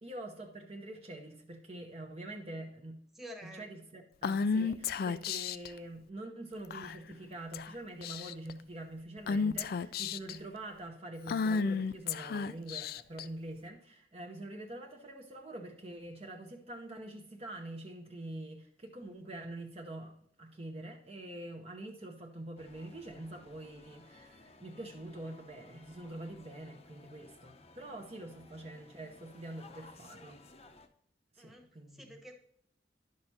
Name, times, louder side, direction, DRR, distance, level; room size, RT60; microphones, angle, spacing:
voice 1, 0.0-3.0 3.4-30.4 31.3-32.2, right 1 dB, 35° right, 2 dB, 0.8 m, -45 dB
voice 2, 3.1-3.7 28.5-28.8 31.4-32.3, equal, ahead, 1 dB, 1.2 m, -50 dB
Female speech woman speaking / Whispering, 4.2-5.7 6.7-7.1 7.5-7.7 8.0-8.5 9.3-10.4 11.3-13.2, left 5 dB, 60° left, 0.3 m, -32 dB
sound 1, 22.6-30.9, left 3 dB, 35° left, 0.7 m, -57 dB
11.0 x 6.5 x 2.8 m, 0.68 s
head